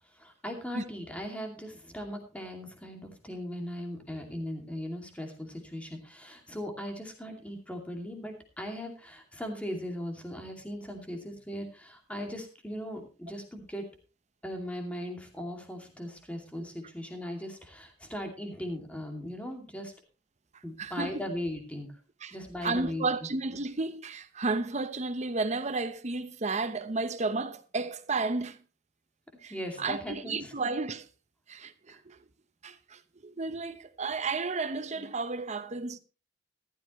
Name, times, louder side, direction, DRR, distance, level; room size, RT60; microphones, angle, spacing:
voice 1, 0.1-13.8 14.4-19.9 20.6-21.9 22.3-23.1 29.5-30.5, equal, 5° left, 2.5 m, -38 dB
voice 2, 20.8-21.2 22.2-22.3 22.6-28.6 29.4-29.5 29.8-31.1 31.5-32.2 32.6-36.0, right 3 dB, 40° right, 0.9 m, -32 dB
14.5 x 12.5 x 3.1 m
head